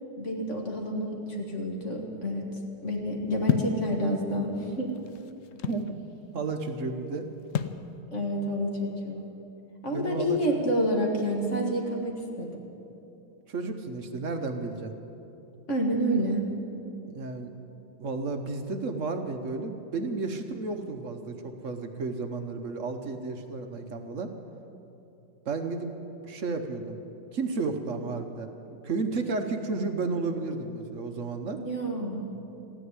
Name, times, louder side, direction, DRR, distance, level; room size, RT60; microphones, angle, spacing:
voice 1, 0.2-2.5 2.8-4.9 8.1-9.2 9.8-12.6 15.7-16.4 31.6-32.3, equal, 40° left, 0 dB, 1.8 m, -29 dB
sound 1, 3.5-3.8 4.7-5.9 7.5-7.8, left 8 dB, 80° left, 0.7 m, -28 dB
voice 2, 5.6-6.0 6.3-7.3 9.9-10.6 13.5-14.9 17.1-17.5 18.0-24.3 25.4-26.0 26.2-27.0 27.3-31.6, right 3 dB, 50° right, 6 dB, 1.0 m, -32 dB
15.0 x 9.7 x 9.6 m, 3.0 s
omnidirectional pair, 2.0 m